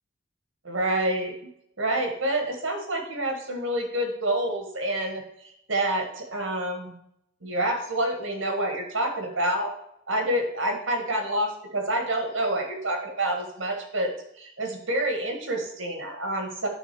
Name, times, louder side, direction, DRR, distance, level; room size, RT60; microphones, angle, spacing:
voice 1, 0.6-1.3 1.8-6.9 7.4-9.7 10.1-16.7, right 1 dB, 85° right, 3 dB, 1.7 m, -28 dB
8.9 x 3.8 x 6.8 m, 0.74 s
head